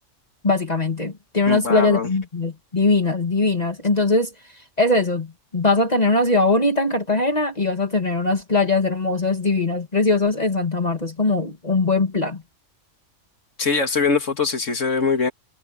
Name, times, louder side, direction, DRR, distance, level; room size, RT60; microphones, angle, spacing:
voice 1, 0.4-4.3 4.8-12.4, left 3 dB, 35° left, 1.9 m, -21 dB
voice 2, 1.5-2.1 13.6-15.3, left 4 dB, 85° left, 2.5 m, -22 dB
omnidirectional pair, 1.2 m